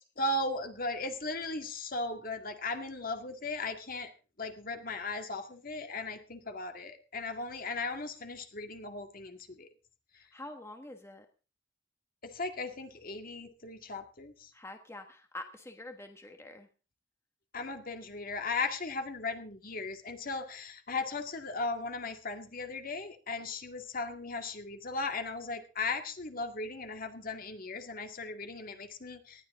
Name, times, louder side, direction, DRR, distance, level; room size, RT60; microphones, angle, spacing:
voice 1, 0.2-4.1 4.4-9.7 12.2-14.5 17.5-29.5, left 3 dB, 50° left, 6 dB, 2.1 m, -37 dB
voice 2, 10.3-11.3 14.5-16.7, left 1 dB, 15° left, 5 dB, 1.3 m, -46 dB
19.0 x 13.0 x 3.7 m, 0.34 s
head